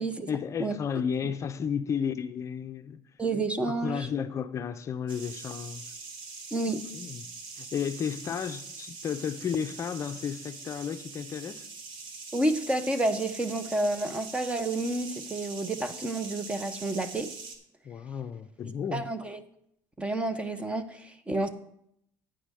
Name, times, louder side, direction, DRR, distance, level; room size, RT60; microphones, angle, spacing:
voice 1, 0.3-3.0 3.7-5.9 6.7-7.2 7.6-11.7 17.8-19.1, left 7 dB, 35° left, 0.5 m, -33 dB
voice 2, 3.2-4.1 6.5-6.8 12.3-17.3 18.9-19.4 20.0-21.5, right 2 dB, 15° right, 0.7 m, -30 dB
sound 1, 5.1-17.6, right 4 dB, 65° right, 1.6 m, -43 dB
9.1 x 5.0 x 7.5 m
cardioid pair, 135°, 9 cm